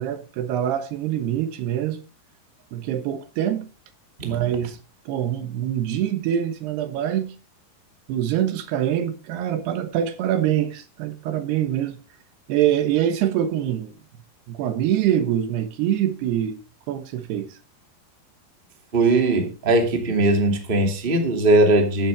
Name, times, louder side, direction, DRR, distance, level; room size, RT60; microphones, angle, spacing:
voice 1, 0.0-2.0 2.7-3.7 4.2-4.8 5.1-7.4 8.1-12.0 12.5-13.9 14.5-16.6 16.9-17.6, right 11 dB, 80° right, 3.2 m, -24 dB
voice 2, 18.9-22.1, right 2 dB, 15° right, 1.9 m, -19 dB
14.5 x 11.0 x 3.4 m
omnidirectional pair, 4.7 m